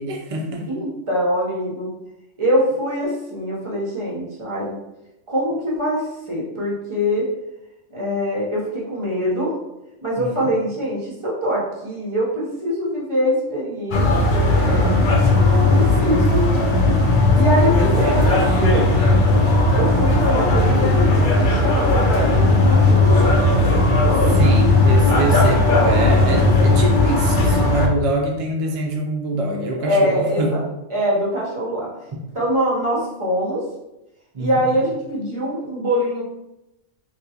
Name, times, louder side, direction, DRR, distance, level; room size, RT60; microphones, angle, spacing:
voice 1, 0.0-0.7 10.2-10.4 15.7-16.2 17.2-18.3 24.4-30.6 34.3-34.7, right 2 dB, 65° right, 1 dB, 0.3 m, -25 dB
voice 2, 0.7-1.9 2.4-4.8 5.3-7.2 7.9-9.6 10.0-14.9 15.7-16.5 17.3-19.3 19.7-24.5 25.5-26.0 29.8-30.6 30.9-31.9 32.3-33.6 34.4-36.2, equal, 30° right, -5 dB, 0.8 m, -23 dB
sound 1, 13.9-27.9, left 2 dB, 55° left, 0.6 m, -16 dB
3.6 x 2.5 x 2.8 m, 0.92 s
omnidirectional pair, 1.3 m